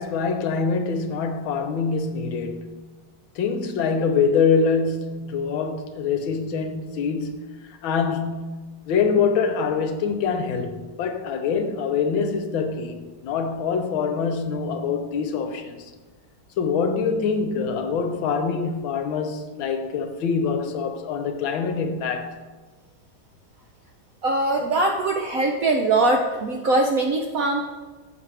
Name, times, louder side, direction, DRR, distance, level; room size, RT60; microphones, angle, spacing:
voice 1, 0.0-2.7 3.4-8.5 8.9-15.9 16.6-22.4, left 5 dB, 75° left, 1.6 m, -25 dB
voice 2, 24.2-27.6, right 2 dB, 65° right, 0.8 m, -22 dB
12.0 x 7.4 x 3.4 m
omnidirectional pair, 2.3 m